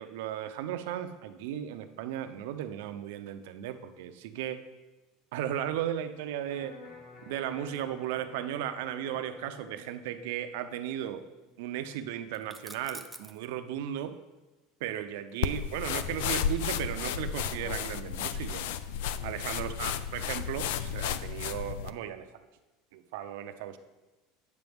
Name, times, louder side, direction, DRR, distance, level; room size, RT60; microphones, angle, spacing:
voice 1, 0.0-4.6 5.3-6.7 7.3-11.2 11.6-14.1 14.8-18.6 19.2-22.3 22.9-23.8, right 11 dB, 70° right, 9 dB, 0.6 m, -36 dB
Electric guitar, 6.5-12.5, left 4 dB, 55° left, 2.6 m, -52 dB
sound 1, 12.3-13.5 15.3-16.9, right 1 dB, ahead, 0.3 m, -48 dB
sound 2, 15.4-21.9, left 8 dB, 75° left, 0.4 m, -33 dB
9.3 x 6.7 x 3.6 m, 1.1 s
cardioid pair, 175°, 0 cm